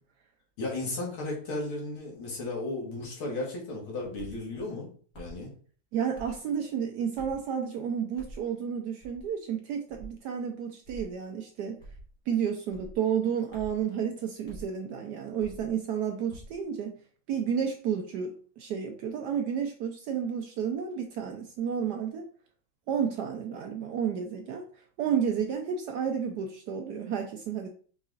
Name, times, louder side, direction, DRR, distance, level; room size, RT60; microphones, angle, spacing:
voice 1, 0.6-4.9 5.2-5.5, left 2 dB, 85° left, -2 dB, 2.4 m, -34 dB
sound 1, 4.2-4.4 5.1-5.4 6.1-6.4 7.2-7.5 8.2-8.4 9.0-9.3 9.9-10.2 10.8-11.1 11.8-12.1 12.7-13.0 13.5-13.8 14.5-14.7 15.4-15.7 16.3-16.6, right 1 dB, 45° left, 2.0 m, -45 dB
voice 2, 5.9-11.8 12.3-17.0 17.3-22.3 22.9-24.6 25.0-27.7, right 7 dB, 80° right, 3 dB, 0.9 m, -31 dB
4.7 x 4.0 x 2.4 m, 0.43 s
omnidirectional pair, 2.3 m